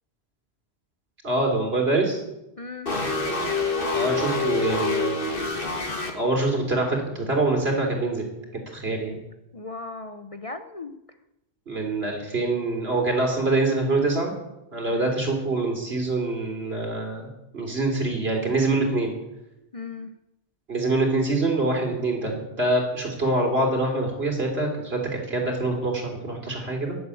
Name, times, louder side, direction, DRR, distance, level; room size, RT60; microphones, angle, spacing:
voice 1, 1.2-2.2 3.9-5.5 6.1-8.3 8.5-9.2 11.7-14.3 14.7-17.3 17.5-19.1 20.7-27.0, right 2 dB, 65° right, 2 dB, 3.7 m, -25 dB
voice 2, 2.6-2.9 9.5-10.9 14.9-15.1 19.7-20.1, left 3 dB, 35° left, 8 dB, 0.7 m, -37 dB
sound 1, 2.9-6.1, left 3 dB, 55° left, 2.0 m, -26 dB
11.0 x 11.0 x 8.4 m, 0.90 s
omnidirectional pair, 1.1 m